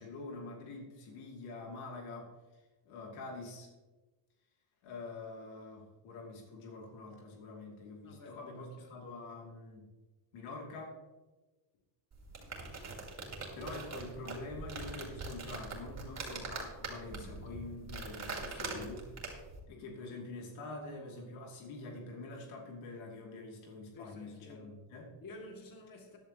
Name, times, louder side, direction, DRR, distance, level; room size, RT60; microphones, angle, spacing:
voice 1, 0.0-2.3 2.9-3.7 4.8-9.9 10.3-11.0 13.5-19.1 19.7-25.1, left 2 dB, 90° left, 2.7 m, -46 dB
voice 2, 8.0-9.0 18.5-18.9 23.9-24.7 25.2-26.2, left 2 dB, 45° left, 2.3 m, -51 dB
sound 1, 12.1-19.6, right 3 dB, 35° right, 2.9 m, -43 dB
14.5 x 10.5 x 2.9 m
cardioid pair, 120°, 47 cm